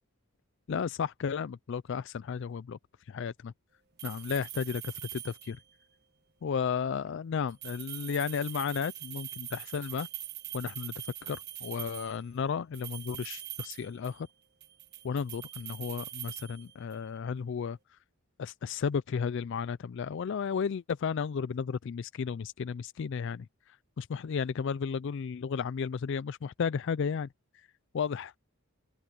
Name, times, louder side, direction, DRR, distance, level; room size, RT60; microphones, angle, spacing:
voice 1, 0.7-2.8 3.1-3.5 4.0-4.8 5.1-5.6 6.4-10.1 10.5-10.9 11.2-14.3 15.0-17.8 18.4-23.5 24.0-27.3 27.9-28.3, left 6 dB, 55° left, 0.3 m, -33 dB
sound 1, 4.0-5.7 7.5-12.2 12.7-14.3 14.6-17.1, right 13 dB, 45° right, 1.5 m, -43 dB
open air
head